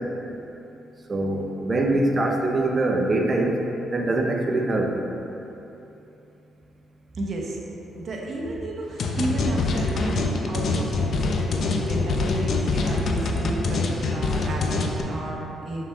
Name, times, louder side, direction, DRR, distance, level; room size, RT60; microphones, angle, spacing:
voice 1, 1.1-3.6 3.9-5.0, right 2 dB, 35° right, 2 dB, 0.7 m, -23 dB
voice 2, 7.1-7.6 7.9-13.9 14.1-15.9, right 2 dB, 50° right, -1 dB, 1.1 m, -32 dB
sound 1, 9.0-15.0, left 3 dB, 55° left, 0.6 m, -25 dB
6.0 x 5.7 x 3.6 m, 2.9 s
cardioid pair, 90°, 0 cm